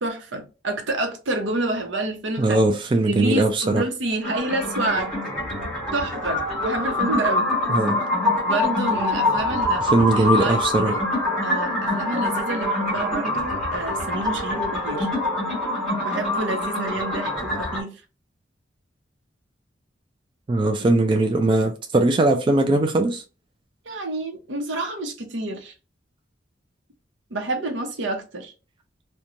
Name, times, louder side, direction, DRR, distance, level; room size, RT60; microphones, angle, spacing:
voice 1, 0.0-2.6 3.0-5.1 5.9-7.5 8.4-11.0 11.4-15.1 16.0-18.0 20.8-20.9 23.8-25.7 27.3-28.5, right 2 dB, 80° right, 0.7 m, -28 dB
voice 2, 2.4-3.8 7.7-8.0 9.9-10.9 20.5-23.2, right 2 dB, 25° right, 0.3 m, -20 dB
sound 1, 4.2-17.8, left 1 dB, 5° left, 1.3 m, -25 dB
2.9 x 2.2 x 2.5 m
head